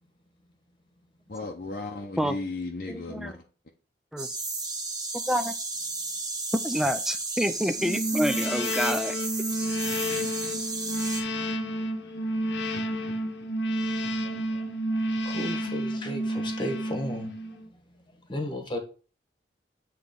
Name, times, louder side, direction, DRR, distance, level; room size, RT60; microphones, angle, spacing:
voice 1, 1.3-3.4, left 3 dB, 50° left, 0.8 m, -35 dB
voice 2, 2.9-3.4 4.1-4.3 5.3-5.5 6.6-9.2, equal, ahead, 0.4 m, -28 dB
sound 1, 4.2-11.2, right 3 dB, 25° right, 1.3 m, -33 dB
sound 2, 7.8-17.7, equal, 85° left, 1.0 m, -30 dB
voice 3, 15.2-17.3 18.3-18.8, left 1 dB, 25° left, 1.4 m, -33 dB
8.1 x 3.3 x 5.2 m
head